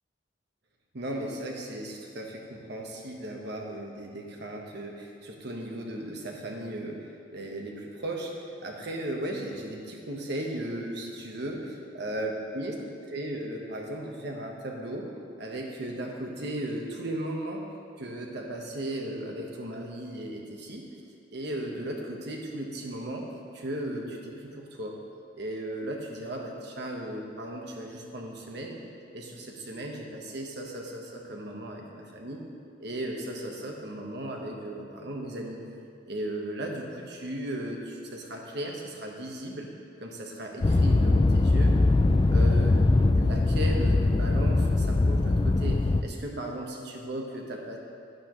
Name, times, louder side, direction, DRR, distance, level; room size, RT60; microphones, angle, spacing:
voice 1, 0.9-12.7 13.1-15.1 15.4-17.7 18.0-20.9 21.3-23.3 23.5-25.0 25.3-28.8 29.1-32.4 32.8-35.8 36.1-39.7 40.0-41.8 42.3-47.8, right 1 dB, 65° right, 0 dB, 1.4 m, -36 dB
sound 1, 40.6-46.0, left 2 dB, 25° left, 0.3 m, -22 dB
11.0 x 11.0 x 3.2 m, 2.5 s
head